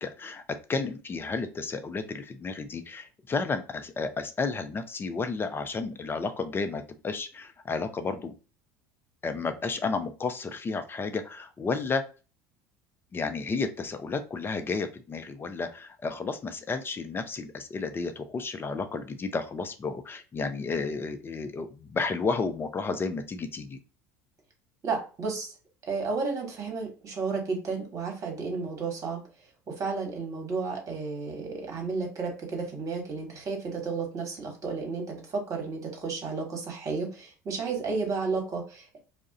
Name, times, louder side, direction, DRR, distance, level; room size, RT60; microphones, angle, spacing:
voice 1, 0.0-8.3 9.2-12.1 13.1-23.8, left 4 dB, 25° left, 8 dB, 0.5 m, -32 dB
voice 2, 24.8-25.5 25.8-29.2 29.7-39.0, right 4 dB, 40° right, 2 dB, 1.3 m, -32 dB
2.3 x 2.1 x 3.8 m, 0.34 s
hypercardioid pair, 75°, 9 cm